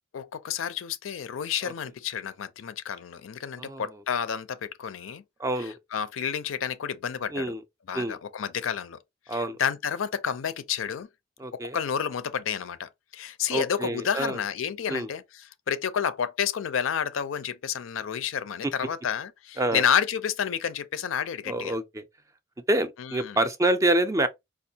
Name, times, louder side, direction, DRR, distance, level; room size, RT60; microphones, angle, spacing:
voice 1, 0.1-5.2 5.6-7.5 7.9-9.0 9.3-11.1 11.5-21.8 23.0-23.4, left 8 dB, 80° left, 0.4 m, -30 dB
voice 2, 5.4-5.7 7.3-7.6 7.9-8.2 9.3-9.6 11.4-11.8 13.5-14.4 14.9-15.1 18.6-18.7 19.6-19.8 21.5-22.0 22.7-24.3, right 1 dB, 15° right, 0.4 m, -27 dB
4.4 x 2.3 x 2.7 m
head